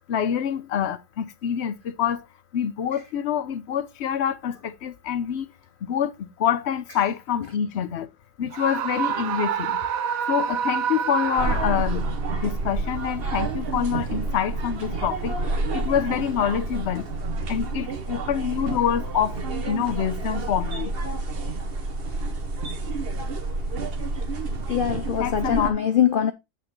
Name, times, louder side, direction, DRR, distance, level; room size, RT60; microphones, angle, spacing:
voice 1, 0.1-2.2 2.5-5.5 5.8-8.1 8.4-9.8 10.3-15.4 15.7-17.1 17.5-20.9 25.2-25.8, left 9 dB, 55° left, 0.8 m, -26 dB
Screaming, 8.5-12.2, right 8 dB, 65° right, 1.1 m, -27 dB
sound 1, 11.4-25.7, right 3 dB, 40° right, 1.2 m, -29 dB
voice 2, 24.7-26.3, left 9 dB, 85° left, 0.4 m, -22 dB
8.3 x 6.6 x 3.1 m
omnidirectional pair, 1.7 m